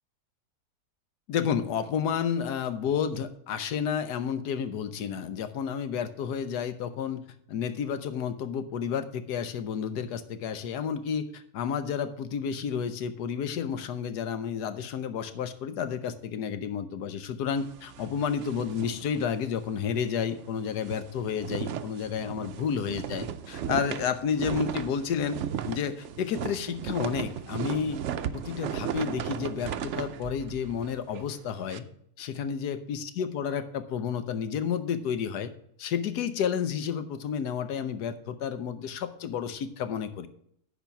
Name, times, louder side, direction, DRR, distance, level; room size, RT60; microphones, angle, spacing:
voice 1, 1.3-7.2 7.5-25.4 25.6-28.0 28.3-31.8 32.2-35.5 35.8-40.3, left 7 dB, 85° left, 11 dB, 1.4 m, -31 dB
sound 1, 17.5-19.8 20.1-20.3 20.6-31.8, right 9 dB, 65° right, 0.7 m, -36 dB
10.5 x 4.4 x 6.9 m, 0.69 s
omnidirectional pair, 1.7 m